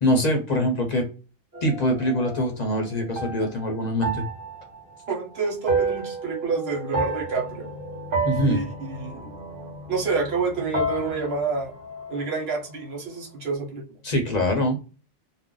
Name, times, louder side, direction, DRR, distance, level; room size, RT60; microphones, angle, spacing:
voice 1, 0.0-1.0 1.6-4.3 8.2-8.6 14.0-14.8, equal, 50° left, 2 dB, 0.7 m, -23 dB
sound 1, 1.5-10.4 10.7-12.8, right 3 dB, 60° right, 1.1 m, -31 dB
voice 2, 5.1-7.7 8.4-9.4 9.9-11.7 12.1-13.8, right 4 dB, 80° right, 1 dB, 1.1 m, -28 dB
sound 2, 7.2-12.9 13.2-13.3, left 4 dB, ahead, 1.1 m, -43 dB
2.5 x 2.1 x 3.7 m, 0.34 s
omnidirectional pair, 1.0 m